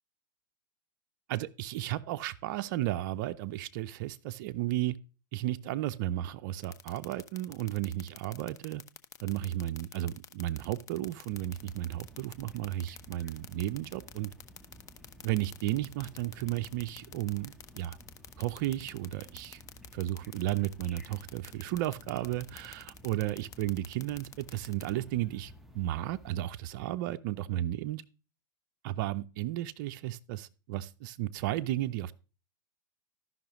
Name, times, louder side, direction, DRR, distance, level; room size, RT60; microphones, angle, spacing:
voice 1, 1.3-5.0 5.3-8.8 9.2-14.3 15.2-18.0 18.4-19.6 19.9-28.0 28.8-32.1, right 14 dB, 55° right, 0.4 m, -34 dB
sound 1, 6.6-24.9, left 9 dB, 30° left, 0.6 m, -47 dB
sound 2, 11.3-26.3, equal, ahead, 0.8 m, -54 dB
13.5 x 5.6 x 3.0 m
hypercardioid pair, 110°, 12 cm